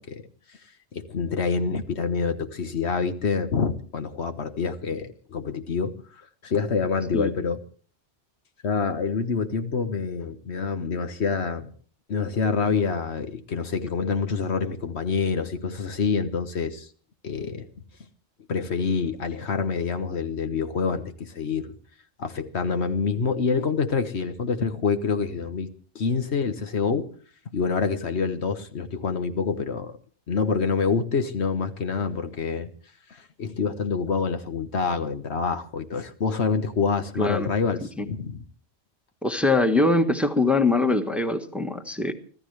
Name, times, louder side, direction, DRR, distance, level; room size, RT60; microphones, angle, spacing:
voice 1, 0.9-7.6 8.6-11.7 12.1-16.9 17.2-17.7 18.5-21.8 22.2-25.7 25.9-27.1 27.5-30.0 30.3-32.7 33.1-38.4, left 5 dB, 75° left, 8 dB, 1.5 m, -27 dB
voice 2, 37.2-37.5 38.0-38.1 39.2-42.1, left 2 dB, ahead, 6 dB, 1.2 m, -22 dB
25.0 x 14.5 x 3.3 m, 0.43 s
omnidirectional pair, 1.1 m